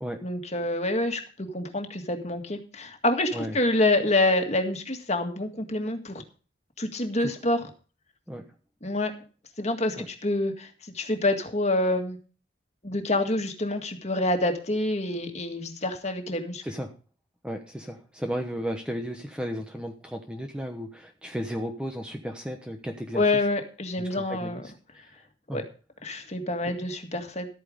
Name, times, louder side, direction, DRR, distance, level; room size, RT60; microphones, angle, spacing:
voice 1, 0.2-6.2 6.8-7.7 8.8-9.1 9.6-10.7 10.9-12.2 12.8-16.6 23.1-24.7 25.5-25.6 26.0-27.5, left 2 dB, 35° left, 5 dB, 1.9 m, -27 dB
voice 2, 17.4-23.2 24.0-24.7 25.5-25.6 26.6-26.8, equal, 5° right, 4 dB, 1.1 m, -34 dB
13.0 x 9.1 x 5.0 m, 0.37 s
head